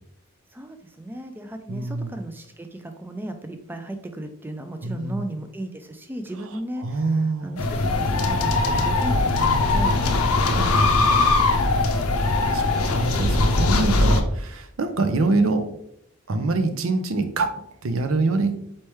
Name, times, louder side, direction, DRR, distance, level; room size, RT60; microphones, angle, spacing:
voice 1, 0.5-6.8 7.4-9.9 10.4-10.9, right 1 dB, 10° right, 6 dB, 0.3 m, -35 dB
voice 2, 1.7-2.2 4.8-5.2 6.4-7.6 10.5-11.1 12.2-15.7 16.3-18.6, right 3 dB, 70° right, 8 dB, 0.5 m, -25 dB
sound 1, 7.6-14.2, left 2 dB, 85° left, 0.6 m, -20 dB
4.3 x 3.3 x 3.1 m, 0.73 s
head